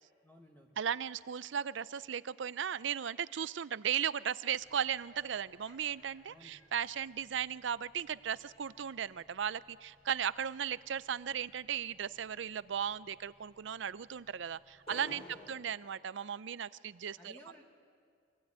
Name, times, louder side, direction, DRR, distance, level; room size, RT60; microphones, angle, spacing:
voice 1, 0.2-0.7 6.3-6.6 15.0-15.5 17.2-17.6, equal, 10° left, 0 dB, 1.4 m, -56 dB
voice 2, 0.8-15.2 15.5-17.3, right 8 dB, 75° right, 17 dB, 0.5 m, -36 dB
sound 1, 4.6-15.6, left 1 dB, 35° left, 4.2 m, -60 dB
Laughter, 4.9-7.2, left 2 dB, 80° left, 6.0 m, -65 dB
25.0 x 16.0 x 8.8 m, 2.2 s
head